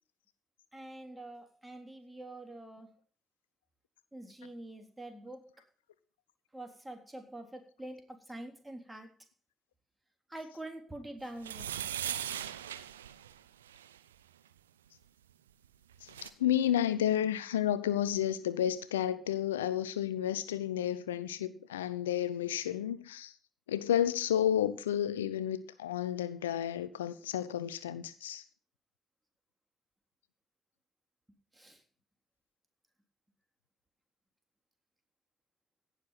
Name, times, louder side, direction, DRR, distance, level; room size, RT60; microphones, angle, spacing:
voice 1, 0.7-2.9 4.1-5.5 6.5-9.1 10.3-11.7 31.5-31.8, right 1 dB, 15° right, 3.6 m, -46 dB
sound 1, 11.4-14.0 15.6-15.7 15.9-16.3, right 10 dB, 85° right, 0.6 m, -39 dB
voice 2, 16.0-23.3 23.7-28.4, left 10 dB, 80° left, 0.5 m, -31 dB
17.0 x 6.6 x 5.8 m
figure-of-eight pair, 45°, 0 cm